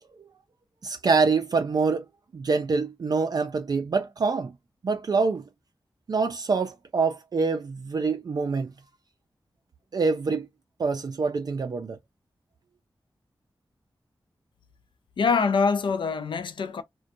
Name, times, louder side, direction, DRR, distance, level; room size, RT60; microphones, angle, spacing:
voice 1, 0.8-2.0 2.3-4.5 4.8-5.4 6.1-8.7 9.9-10.5 10.8-12.0, right 4 dB, 50° right, 0.3 m, -25 dB
voice 2, 15.2-16.8, left 5 dB, 70° left, 0.4 m, -24 dB
2.6 x 2.1 x 2.5 m
wide cardioid pair, 95°, 9 cm